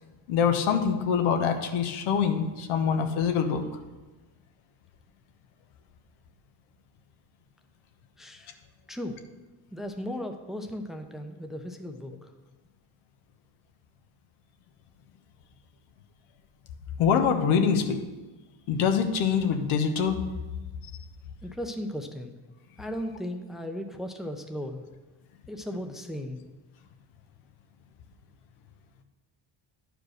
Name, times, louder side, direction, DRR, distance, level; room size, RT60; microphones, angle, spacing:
voice 1, 0.3-3.6 17.0-18.0 18.7-20.2, left 7 dB, 80° left, 6 dB, 1.2 m, -24 dB
voice 2, 8.2-8.6 8.9-9.2 9.7-12.3 21.4-22.3 22.8-24.8 25.5-26.4, equal, ahead, 5 dB, 0.7 m, -36 dB
10.0 x 5.0 x 6.5 m, 1.2 s
cardioid pair, 110°, 48 cm